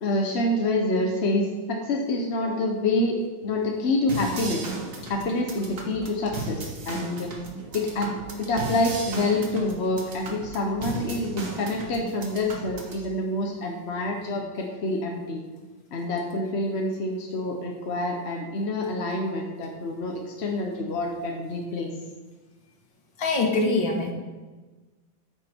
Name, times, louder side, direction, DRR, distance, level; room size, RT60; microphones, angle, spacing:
voice 1, 0.0-4.6 5.1-7.3 7.7-8.1 8.4-15.4 15.9-21.9, left 2 dB, 45° left, 1 dB, 0.9 m, -27 dB
sound 1, 4.1-13.1, right 2 dB, 45° right, 1.7 m, -36 dB
voice 2, 23.2-24.1, left 3 dB, 65° left, 1 dB, 2.3 m, -23 dB
9.5 x 8.8 x 4.5 m, 1.2 s
omnidirectional pair, 2.2 m